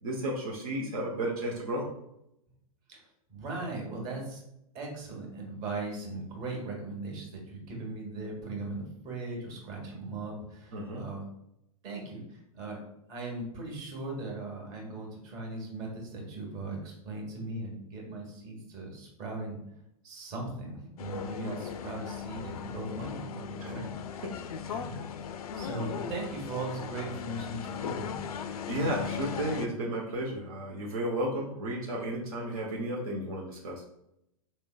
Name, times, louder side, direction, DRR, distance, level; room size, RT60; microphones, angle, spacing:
voice 1, 0.0-1.9 10.7-11.0 23.6-23.7 24.2-24.3 24.6-24.8 28.5-33.8, right 1 dB, 75° right, -2 dB, 0.9 m, -33 dB
voice 2, 3.3-4.4 4.7-11.3 11.8-12.8 13.1-19.6 20.0-24.0 24.7-24.9 25.5-28.2, right 2 dB, 40° right, -1 dB, 1.4 m, -38 dB
sound 1, 21.0-29.7, left 7 dB, 80° left, 0.4 m, -38 dB
4.2 x 3.3 x 2.2 m, 0.80 s
hypercardioid pair, 115°, 19 cm